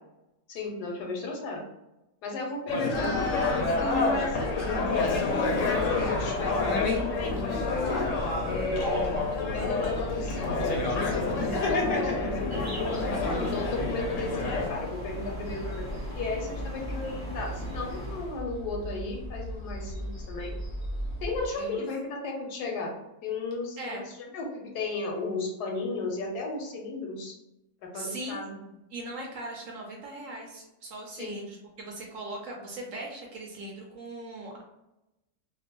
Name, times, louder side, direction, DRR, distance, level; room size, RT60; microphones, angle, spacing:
voice 1, 0.5-1.6 2.2-8.1 8.4-9.2 9.5-13.1 13.4-20.5 21.2-24.0 24.3-27.4 27.8-28.6 31.1-31.4, left 3 dB, 90° left, 0 dB, 1.2 m, -35 dB
sound 1, 2.7-14.7, left 3 dB, 65° left, 0.8 m, -28 dB
sound 2, 2.9-21.5, equal, 20° left, 0.4 m, -38 dB
sound 3, 12.5-18.4, left 1 dB, 15° right, 0.7 m, -41 dB
voice 2, 27.9-28.4 28.9-34.6, right 1 dB, 65° right, 0 dB, 0.8 m, -39 dB
2.9 x 2.0 x 2.8 m, 0.94 s
omnidirectional pair, 1.7 m